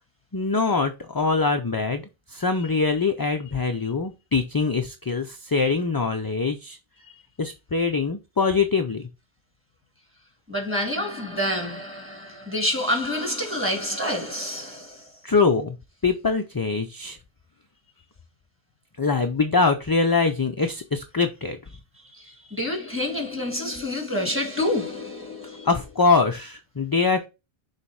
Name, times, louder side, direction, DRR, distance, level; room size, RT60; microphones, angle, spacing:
voice 1, 0.3-2.0 2.3-6.8 7.4-9.1 15.2-15.8 16.0-17.2 19.0-21.6 25.6-27.3, left 4 dB, 30° left, 0.4 m, -23 dB
voice 2, 10.5-15.1 22.1-25.7, left 1 dB, 10° right, 1.9 m, -28 dB
6.9 x 3.2 x 4.7 m
omnidirectional pair, 1.0 m